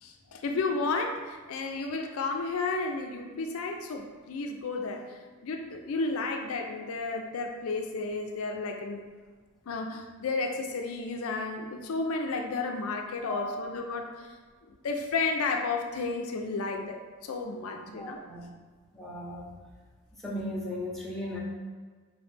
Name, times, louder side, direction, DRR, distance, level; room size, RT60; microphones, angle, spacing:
voice 1, 0.0-9.0 9.7-14.3 14.7-18.2, left 3 dB, 75° left, 3 dB, 0.4 m, -32 dB
voice 2, 13.2-13.7 17.9-18.4 18.9-19.5 20.1-21.4, left 1 dB, ahead, -5 dB, 0.8 m, -37 dB
4.3 x 3.1 x 3.2 m, 1.5 s
head